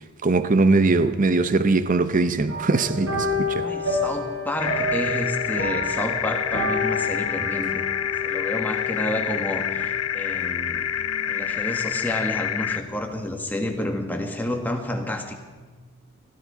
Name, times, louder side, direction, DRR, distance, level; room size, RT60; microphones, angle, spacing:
voice 1, 0.0-3.7, right 3 dB, 35° right, 0.6 m, -21 dB
sound 1, 2.5-12.0 12.3-12.7 13.1-13.2, left 2 dB, 75° right, 5.0 m, -30 dB
voice 2, 3.6-7.8 8.2-10.9 11.3-15.4, left 1 dB, 10° left, 1.4 m, -30 dB
sound 2, 4.6-12.8, left 10 dB, 85° left, 0.6 m, -27 dB
19.5 x 13.5 x 4.9 m
head